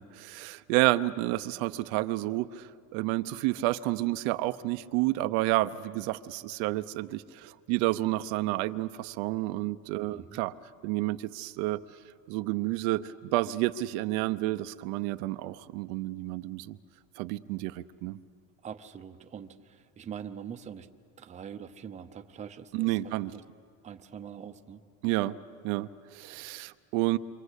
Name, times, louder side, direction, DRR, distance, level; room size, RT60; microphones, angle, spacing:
voice 1, 0.0-10.5 10.8-11.8 12.3-16.8 17.2-18.2 22.7-23.3 25.0-25.4 25.6-27.2, right 17 dB, 75° right, 11 dB, 0.8 m, -30 dB
voice 2, 10.0-10.4 18.6-20.9 21.2-23.0 23.3-23.4 23.8-24.8, right 8 dB, 20° right, 6 dB, 0.8 m, -43 dB
28.0 x 25.5 x 8.2 m, 2.2 s
cardioid pair, 165°, 39 cm